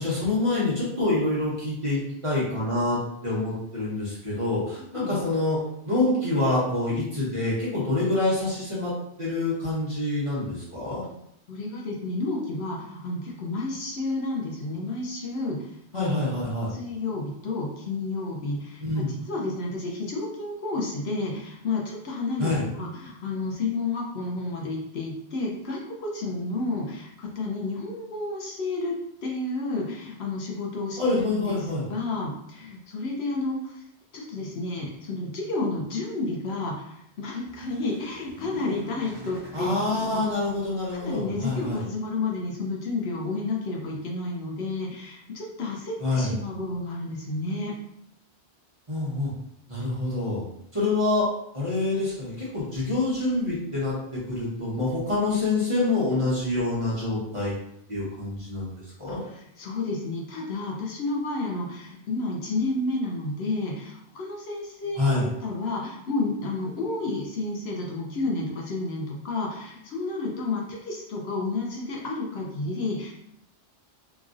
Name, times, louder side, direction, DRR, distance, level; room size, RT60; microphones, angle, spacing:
voice 1, 0.0-5.6 5.8-8.9 9.2-11.0 15.9-16.7 18.8-19.1 22.4-22.6 31.0-31.8 39.5-41.8 46.0-46.3 48.9-49.3 49.7-50.4 50.7-51.2 51.5-57.5 57.9-58.7 59.0-59.2 65.0-65.3, left 2 dB, 30° right, -7 dB, 0.9 m, -26 dB
voice 2, 11.5-16.3 16.7-28.9 29.2-33.8 34.1-40.2 41.0-47.7 59.1-73.1, left 2 dB, 70° left, -2 dB, 0.9 m, -31 dB
sound 1, 37.2-41.9, equal, 55° right, 0.9 m, -46 dB
3.0 x 2.5 x 2.4 m, 0.76 s
omnidirectional pair, 1.1 m